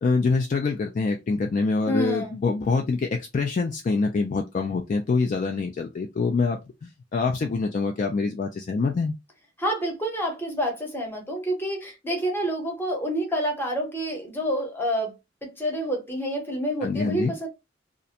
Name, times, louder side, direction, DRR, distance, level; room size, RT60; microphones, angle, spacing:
voice 1, 0.0-9.1 16.8-17.3, left 4 dB, 40° left, 0.3 m, -25 dB
voice 2, 1.9-2.4 9.6-15.1 15.4-17.5, equal, 10° left, 0.8 m, -28 dB
2.4 x 2.1 x 2.7 m
head